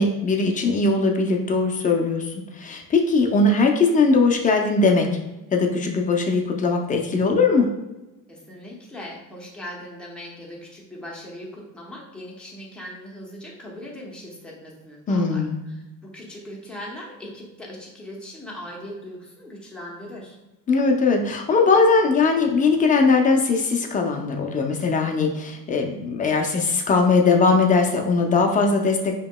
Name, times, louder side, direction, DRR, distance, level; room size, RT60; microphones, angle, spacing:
voice 1, 0.0-5.1 5.5-7.7 15.1-15.6 20.7-29.2, left 3 dB, 25° left, 2 dB, 0.4 m, -20 dB
voice 2, 8.3-15.8 16.0-20.4, left 1 dB, 5° left, -4 dB, 0.8 m, -39 dB
5.0 x 2.9 x 2.2 m, 1.0 s
cardioid pair, 140°, 34 cm